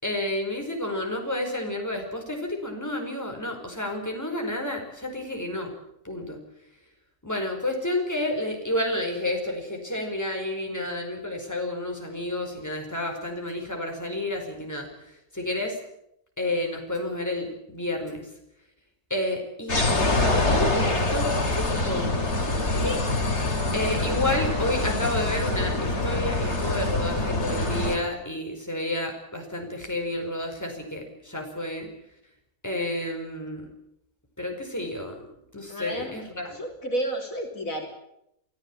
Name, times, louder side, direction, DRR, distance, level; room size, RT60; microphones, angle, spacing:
voice 1, 0.0-5.7 6.0-6.4 7.2-15.8 16.4-18.2 19.1-19.8 20.4-22.1 22.4-22.6 22.8-23.0 23.7-31.9 32.6-33.6 34.4-35.3 35.5-36.6, left 1 dB, 10° left, 2 dB, 4.9 m, -30 dB
sound 1, 19.7-28.0, left 2 dB, 45° left, 3.3 m, -25 dB
voice 2, 35.7-36.1 36.5-37.9, right 1 dB, 60° left, 2 dB, 3.6 m, -31 dB
23.5 x 15.5 x 8.8 m, 0.78 s
omnidirectional pair, 1.6 m